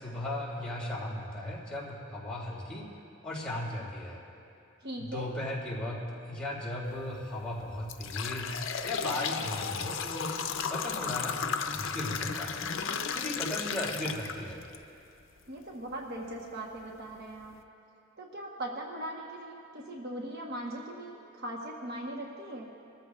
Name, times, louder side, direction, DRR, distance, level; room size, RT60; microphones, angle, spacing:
voice 1, 0.0-2.9 3.2-4.2 5.0-8.6 8.8-10.4 10.7-11.4 11.7-12.6 13.1-14.6, left 1 dB, 5° left, -7 dB, 3.0 m, -36 dB
voice 2, 4.8-5.3 15.5-17.6 18.2-22.7, right 1 dB, 50° right, -1 dB, 1.1 m, -39 dB
sound 1, 6.9-7.1 7.6-14.8 15.2-15.3 16.2-16.3 16.8-16.9 17.3-17.5, left 6 dB, 65° left, 0.6 m, -34 dB
21.5 x 14.0 x 2.4 m, 2.7 s
head